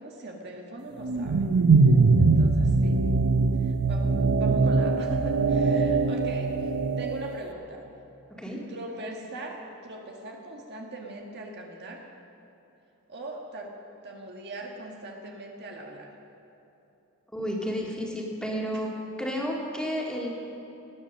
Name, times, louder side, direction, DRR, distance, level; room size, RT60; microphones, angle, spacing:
voice 1, 0.0-1.4 2.2-3.0 3.6-6.5 7.0-7.8 8.7-12.1 13.1-13.7 14.0-16.1 18.7-18.8, right 1 dB, 50° right, 0 dB, 1.5 m, -40 dB
sound 1, 1.0-7.3, right 3 dB, 85° right, 0.6 m, -22 dB
voice 2, 8.3-8.6 17.3-18.9 19.2-20.3, equal, 5° left, -2 dB, 2.3 m, -31 dB
18.5 x 10.5 x 6.4 m, 2.9 s
head